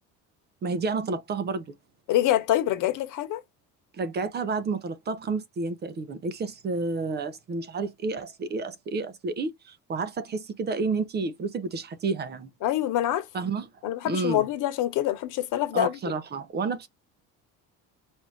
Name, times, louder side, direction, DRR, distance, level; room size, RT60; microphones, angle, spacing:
voice 1, 0.6-1.6 3.9-12.5 13.3-13.7 14.1-14.4 15.7-16.9, right 4 dB, 30° right, 0.6 m, -30 dB
voice 2, 2.1-3.4 12.6-13.2 13.8-16.0, left 13 dB, 65° left, 1.2 m, -25 dB
4.8 x 2.6 x 3.1 m
cardioid pair, 155°, 33 cm